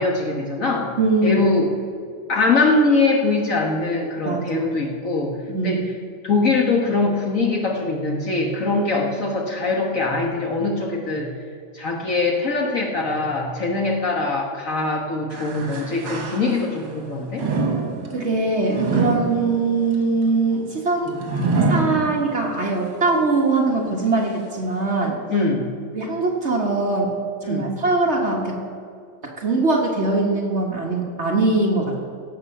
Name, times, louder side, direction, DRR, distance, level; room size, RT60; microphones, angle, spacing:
voice 1, 0.0-0.9 1.2-1.7 2.3-5.4 5.6-5.8 6.2-11.3 11.7-17.5 21.0-21.2 25.3-25.7 27.4-27.7, left 3 dB, 45° left, 1 dB, 1.4 m, -22 dB
voice 2, 1.0-1.5 4.2-4.7 5.5-5.8 13.7-13.8 18.1-21.2 21.4-25.2 25.9-27.1 27.5-28.6 29.4-32.0, right 3 dB, 40° right, 0 dB, 1.6 m, -22 dB
sound 1, 15.3-16.9 17.3-22.6 23.1-23.2 24.1-24.2, right 4 dB, 65° right, 2.3 m, -26 dB
17.5 x 7.7 x 5.6 m, 2.3 s
omnidirectional pair, 2.1 m